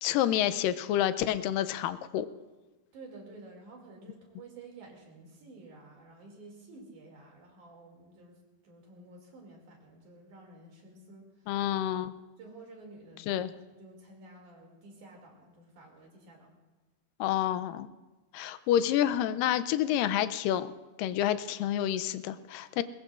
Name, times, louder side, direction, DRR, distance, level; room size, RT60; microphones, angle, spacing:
voice 1, 0.0-2.3 11.5-12.1 13.3-13.5 17.2-17.9 18.3-20.7 21.0-22.8, left 11 dB, 85° left, 13 dB, 2.3 m, -28 dB
voice 2, 2.9-8.4 8.6-11.6 12.4-16.5, right 2 dB, 65° right, 0 dB, 3.9 m, -51 dB
21.0 x 20.5 x 2.5 m, 1.2 s
omnidirectional pair, 3.8 m